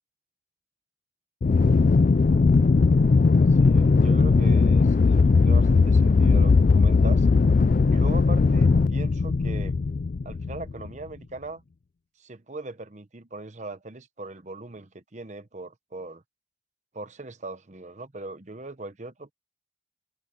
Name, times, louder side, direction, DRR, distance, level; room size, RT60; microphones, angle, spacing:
Aircraft, 1.4-10.9, left 4 dB, 45° left, 0.3 m, -19 dB
voice 1, 1.5-1.9 3.5-7.3 7.9-9.7 10.2-11.6 12.2-16.2 16.9-19.3, right 2 dB, 35° right, 1.0 m, -39 dB
open air
head